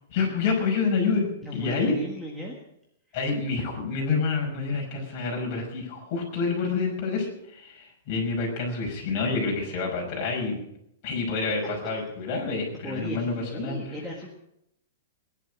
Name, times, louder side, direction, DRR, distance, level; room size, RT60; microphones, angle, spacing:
voice 1, 0.0-1.9 3.1-10.6 11.0-14.0, left 4 dB, 30° left, -1 dB, 5.6 m, -28 dB
voice 2, 1.4-2.5 5.0-5.1 12.8-14.3, left 1 dB, 5° right, -2 dB, 1.6 m, -35 dB
19.5 x 11.0 x 6.3 m, 0.78 s
hypercardioid pair, 175°, 0 cm